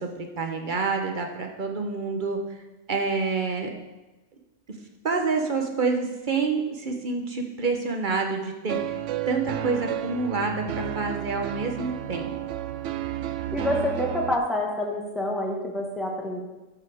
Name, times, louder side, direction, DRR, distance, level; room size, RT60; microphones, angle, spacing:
voice 1, 0.0-2.6 2.9-3.7 5.0-8.9 9.3-12.3, right 4 dB, 40° right, 3 dB, 1.2 m, -27 dB
sound 1, 8.7-14.4, right 10 dB, 70° right, 0.9 m, -32 dB
voice 2, 13.5-16.4, left 1 dB, ahead, -2 dB, 1.6 m, -27 dB
12.0 x 8.1 x 3.6 m, 1.1 s
omnidirectional pair, 1.4 m